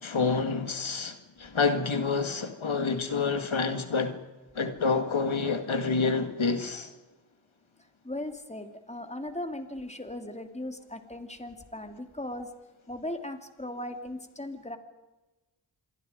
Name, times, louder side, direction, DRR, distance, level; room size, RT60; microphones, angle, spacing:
voice 1, 0.0-4.2 4.6-6.9, left 4 dB, 90° left, 1.9 m, -28 dB
voice 2, 8.0-12.5 12.9-14.8, left 1 dB, 15° left, 2.8 m, -38 dB
27.0 x 22.5 x 5.2 m
wide cardioid pair, 45°, 46 cm